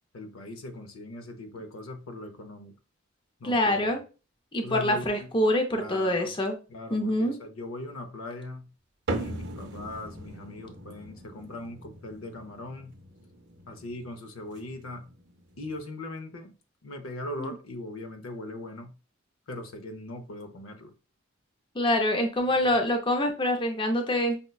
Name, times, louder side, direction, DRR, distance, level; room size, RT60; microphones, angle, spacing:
voice 1, 0.1-2.8 3.4-3.9 4.6-5.3 5.7-6.3 6.7-8.7 9.1-12.9 13.7-15.1 15.6-16.5 16.8-19.0 19.5-20.9 22.6-22.8, left 1 dB, 90° left, 0.6 m, -40 dB
voice 2, 3.4-4.0 4.5-6.6 6.9-7.4 17.4-17.5 21.8-24.4, left 1 dB, 25° left, 0.5 m, -25 dB
sound 1, 9.1-15.8, right 2 dB, 60° right, 0.6 m, -40 dB
5.2 x 2.1 x 2.2 m
head